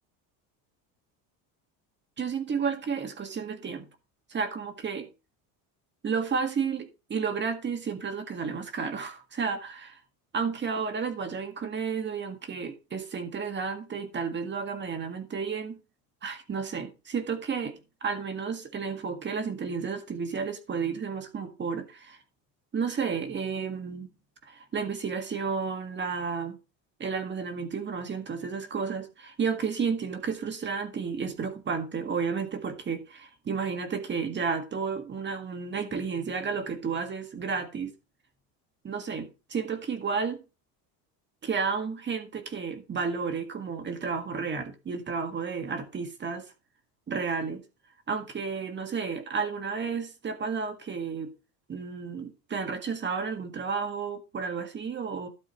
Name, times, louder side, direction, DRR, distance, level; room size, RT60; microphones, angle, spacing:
voice 1, 2.2-3.9 4.3-5.1 6.0-10.0 10.3-15.8 16.2-22.2 22.7-24.1 24.5-26.6 27.0-37.9 38.8-40.4 41.4-46.5 47.1-47.6 48.1-51.3 51.7-55.3, right 5 dB, 25° right, 1.8 m, -32 dB
12.0 x 8.4 x 3.1 m
cardioid pair, 130°, 41 cm